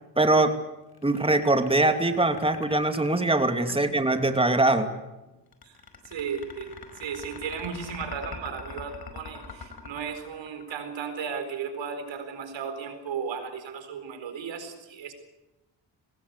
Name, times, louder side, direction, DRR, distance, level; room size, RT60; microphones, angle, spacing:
voice 1, 0.2-0.6 1.0-4.9, right 2 dB, 10° right, 8 dB, 2.5 m, -22 dB
sound 1, 0.9-4.1 5.5-11.0, left 5 dB, 55° left, 5.2 m, -43 dB
voice 2, 6.1-15.1, right 6 dB, 85° right, 8 dB, 4.4 m, -35 dB
24.5 x 19.5 x 8.2 m, 1.0 s
cardioid pair, 60°, 44 cm